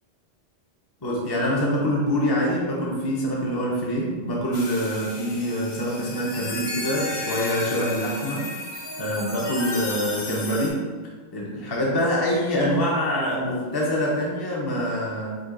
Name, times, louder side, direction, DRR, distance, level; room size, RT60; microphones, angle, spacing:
voice 1, 1.0-8.4 9.0-10.8 11.3-15.4, equal, 25° left, -4 dB, 0.6 m, -25 dB
sound 1, 4.5-10.7, left 2 dB, 50° left, 1.0 m, -34 dB
5.1 x 2.3 x 3.8 m, 1.4 s
omnidirectional pair, 1.2 m